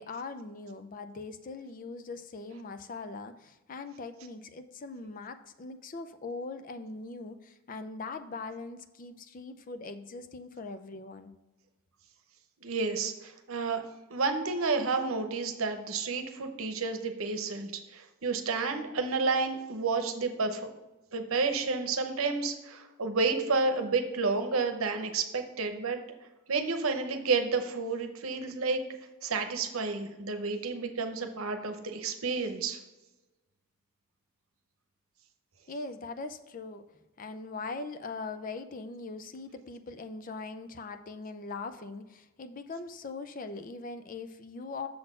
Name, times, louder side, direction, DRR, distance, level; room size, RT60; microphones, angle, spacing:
voice 1, 0.0-11.3 35.7-36.9 37.2-44.9, left 3 dB, 40° left, 10 dB, 0.4 m, -41 dB
voice 2, 12.6-13.8 14.1-20.7 21.1-26.0 26.5-28.8 29.2-32.8, right 4 dB, 75° right, 6 dB, 0.8 m, -30 dB
6.8 x 4.1 x 6.6 m, 1.1 s
head